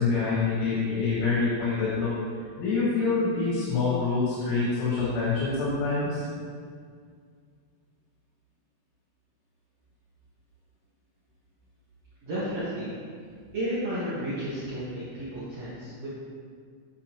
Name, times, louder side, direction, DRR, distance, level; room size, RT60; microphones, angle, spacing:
voice 1, 0.0-2.1 2.6-6.3, left 4 dB, 80° left, -8 dB, 4.1 m, -26 dB
voice 2, 12.2-12.9 13.5-16.1, equal, 60° right, -10 dB, 1.8 m, -32 dB
8.8 x 8.3 x 3.0 m, 2.1 s
omnidirectional pair, 5.5 m